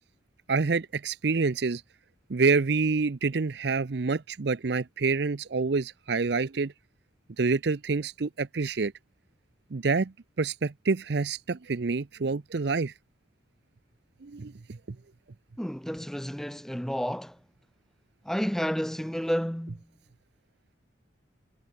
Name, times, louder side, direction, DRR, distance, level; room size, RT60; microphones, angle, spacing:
voice 1, 0.5-1.8 2.3-6.7 7.4-8.9 9.7-12.9 14.2-15.0, right 4 dB, 60° right, 0.6 m, -27 dB
voice 2, 15.6-17.4 18.2-19.8, equal, ahead, 0.7 m, -31 dB
head